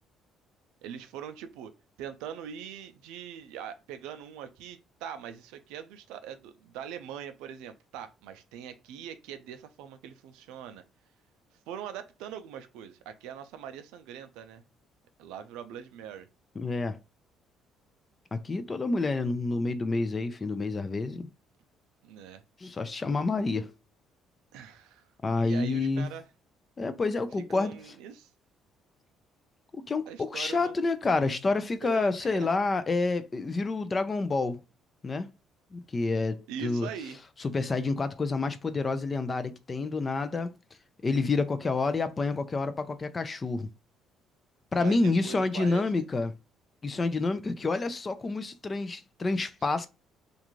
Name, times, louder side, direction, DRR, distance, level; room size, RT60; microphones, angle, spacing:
voice 1, 0.8-1.7 2.0-10.8 11.7-14.6 15.2-16.3 22.0-22.4 24.5-25.1 25.4-26.2 27.5-28.3 30.1-30.7 31.8-32.5 36.5-37.2 44.8-46.1, right 9 dB, 90° right, 0.4 m, -42 dB
voice 2, 16.6-17.0 18.3-21.3 22.6-23.7 25.2-26.1 26.8-27.8 29.7-34.6 35.0-35.3 35.7-36.9 37.4-40.5 41.0-43.7 44.7-46.3 46.8-49.9, left 3 dB, 30° left, 0.4 m, -28 dB
2.5 x 2.3 x 2.9 m
cardioid pair, 90°, 0 cm